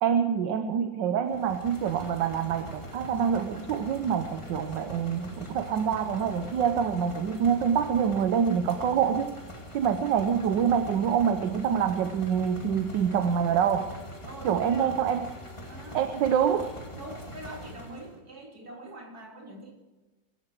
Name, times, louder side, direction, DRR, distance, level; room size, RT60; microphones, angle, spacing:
voice 1, 0.0-9.3 9.7-13.9 14.4-15.2 15.9-16.7, right 7 dB, 75° right, 8 dB, 1.5 m, -26 dB
sound 1, 1.3-18.2, equal, 15° left, 2.4 m, -43 dB
voice 2, 14.2-15.0 15.6-16.0 16.9-19.7, right 1 dB, 55° right, 0 dB, 3.4 m, -43 dB
23.5 x 12.5 x 4.6 m, 1.1 s
omnidirectional pair, 2.0 m